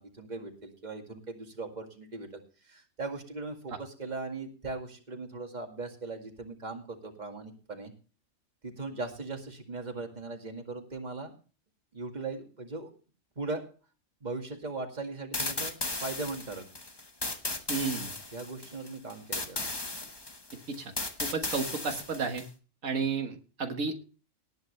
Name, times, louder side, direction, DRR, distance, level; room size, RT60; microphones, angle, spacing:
voice 1, 0.0-7.9 8.6-11.3 11.9-12.9 13.4-13.6 14.2-15.8 16.0-16.7 18.3-19.8, right 3 dB, 35° right, 3 dB, 2.2 m, -39 dB
sound 1, 15.3-22.5, left 2 dB, 20° left, 1.2 m, -36 dB
voice 2, 17.7-18.1 20.7-20.9 21.2-22.4 22.8-24.0, right 5 dB, 85° right, 5 dB, 1.9 m, -32 dB
19.0 x 9.3 x 3.2 m, 0.36 s
omnidirectional pair, 1.3 m